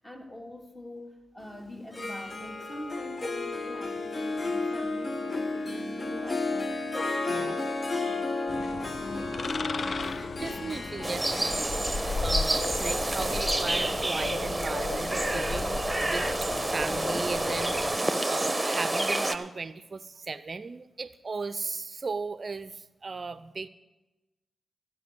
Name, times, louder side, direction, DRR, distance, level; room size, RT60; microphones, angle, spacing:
voice 1, 0.0-6.9 7.2-8.6 8.9-9.6, left 1 dB, 20° left, 4 dB, 2.0 m, -44 dB
Harp, 1.8-14.7, left 2 dB, 40° left, 1.2 m, -33 dB
sound 1, 8.5-18.0, left 4 dB, 55° left, 0.4 m, -36 dB
voice 2, 10.0-23.7, right 4 dB, 50° right, 15 dB, 0.5 m, -37 dB
sound 2, 11.0-19.4, right 2 dB, 15° right, 1.0 m, -29 dB
15.0 x 5.5 x 8.0 m, 1.1 s
supercardioid pair, 40°, 0 cm